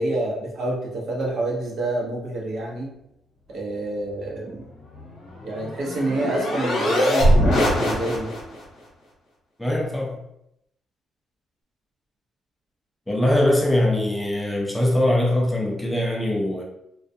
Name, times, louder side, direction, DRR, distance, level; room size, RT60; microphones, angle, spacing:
voice 1, 0.0-2.9 3.5-4.6 5.4-8.3, right 2 dB, 65° right, -3 dB, 0.8 m, -27 dB
sound 1, 5.0-8.6, equal, 75° left, 0.9 m, -22 dB
voice 2, 9.6-10.2 13.1-16.6, left 1 dB, 5° left, -2 dB, 0.4 m, -22 dB
2.3 x 2.2 x 2.6 m, 0.78 s
cardioid pair, 130°, 0 cm